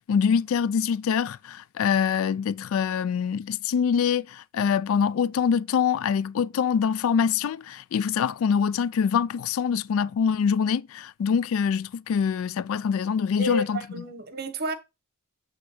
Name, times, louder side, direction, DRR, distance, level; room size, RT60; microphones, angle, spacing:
voice 1, 0.1-13.8, left 7 dB, 70° left, 0.3 m, -24 dB
voice 2, 13.4-14.7, equal, 45° right, 1.2 m, -30 dB
8.3 x 3.7 x 4.4 m
head